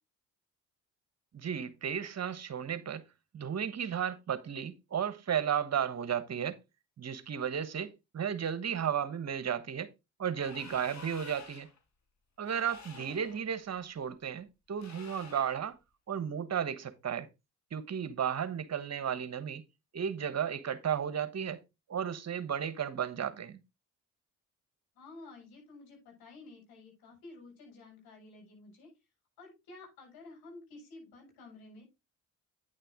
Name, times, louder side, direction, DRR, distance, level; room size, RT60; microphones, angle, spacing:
voice 1, 1.3-3.0 3.3-6.6 7.0-9.9 10.2-11.7 12.4-15.8 16.1-17.3 17.7-19.6 19.9-21.6 21.9-23.6, right 8 dB, 45° right, 1.3 m, -34 dB
sound 1, 10.3-11.8 12.4-13.4 14.8-15.7, left 4 dB, 50° left, 2.7 m, -50 dB
voice 2, 24.9-28.9 29.4-31.8, left 3 dB, 80° left, 6.4 m, -52 dB
9.6 x 6.6 x 3.7 m
supercardioid pair, 60°, 36 cm